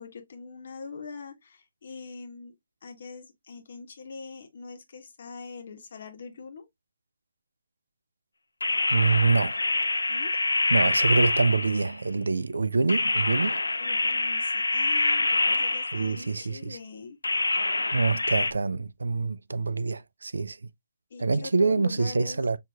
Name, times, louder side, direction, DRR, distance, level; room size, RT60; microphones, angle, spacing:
voice 1, 0.0-2.5 2.8-6.7 10.1-10.3 13.8-17.2 21.1-22.4, left 4 dB, 55° left, 1.2 m, -43 dB
sound 1, 8.6-12.0 12.9-16.3 17.2-18.5, left 2 dB, 85° left, 0.4 m, -26 dB
voice 2, 8.9-9.6 10.7-13.6 15.9-16.8 17.9-20.6 21.2-22.6, right 3 dB, 75° right, 0.4 m, -25 dB
6.2 x 2.8 x 2.3 m
figure-of-eight pair, 140°, 0 cm